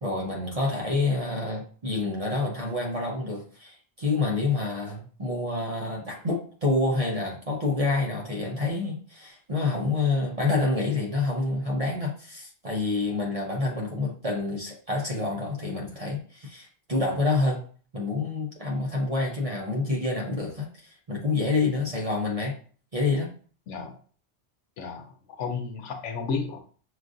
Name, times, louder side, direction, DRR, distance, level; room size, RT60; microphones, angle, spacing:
voice 1, 0.0-17.6 17.9-22.5 22.9-23.3, left 3 dB, 40° right, -2 dB, 0.6 m, -28 dB
voice 2, 23.7-24.0 24.8-26.6, left 5 dB, 75° left, 5 dB, 1.0 m, -33 dB
6.2 x 2.4 x 2.5 m, 0.43 s
omnidirectional pair, 1.2 m